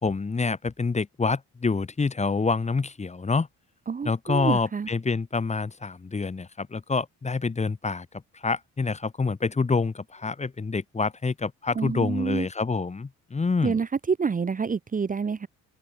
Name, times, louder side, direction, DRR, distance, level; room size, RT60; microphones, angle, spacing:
voice 1, 0.0-3.5 4.0-8.1 8.3-13.8, left 4 dB, 20° left, 1.2 m, -27 dB
voice 2, 3.9-4.9 11.8-12.5 13.6-15.5, right 5 dB, 25° right, 0.9 m, -27 dB
open air
cardioid pair, 90°, 30 cm